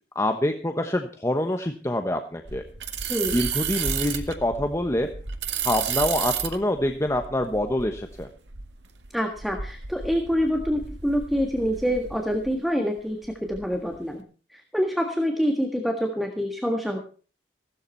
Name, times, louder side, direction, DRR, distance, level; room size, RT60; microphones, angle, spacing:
voice 1, 0.1-2.6 3.3-5.1 5.6-8.3, left 1 dB, 15° left, 5 dB, 1.1 m, -26 dB
sound 1, 2.5-12.6 13.0-14.0, right 7 dB, 90° right, 1.8 m, -33 dB
voice 2, 9.1-14.2 14.5-17.0, equal, ahead, 3 dB, 1.7 m, -26 dB
16.5 x 12.5 x 4.5 m, 0.38 s
head